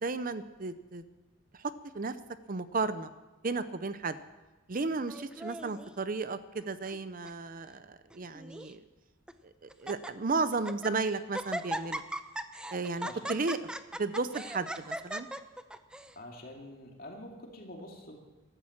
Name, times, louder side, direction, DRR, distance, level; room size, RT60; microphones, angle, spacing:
voice 1, 0.0-1.0 1.9-2.1 2.5-3.1 3.4-4.2 4.7-8.8 9.8-12.0 12.7-13.7 14.0-15.3, right 3 dB, 45° right, 12 dB, 0.6 m, -33 dB
Laughter, 5.1-5.9 6.6-7.0 7.2-7.3 8.1-8.7 9.3-9.4 9.7-10.1 10.5-10.9 11.3-16.1, right 1 dB, 5° right, 0.6 m, -39 dB
voice 2, 16.2-18.2, left 1 dB, 45° left, 1 dB, 2.6 m, -46 dB
15.0 x 13.0 x 7.3 m, 1.2 s
head